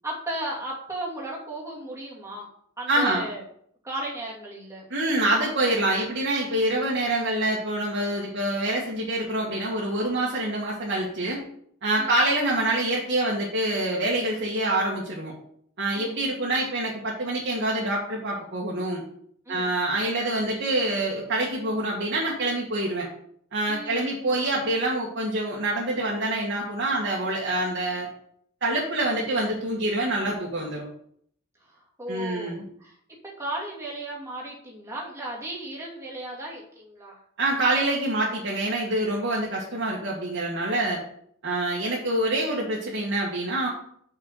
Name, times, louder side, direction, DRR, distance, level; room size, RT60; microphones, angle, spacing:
voice 1, 0.0-2.5 2.8-3.4 3.8-4.9 12.0-12.1 16.0-16.6 19.5-19.7 23.7-24.4 31.6-37.2, right 1 dB, 15° right, -4 dB, 2.5 m, -36 dB
voice 2, 2.9-3.2 4.9-11.4 11.8-15.3 15.8-19.0 19.5-23.1 23.5-28.1 28.6-30.9 32.1-32.6 37.4-41.0 41.4-43.7, right 1 dB, 55° right, -4 dB, 1.8 m, -26 dB
6.5 x 5.9 x 6.5 m, 0.66 s
head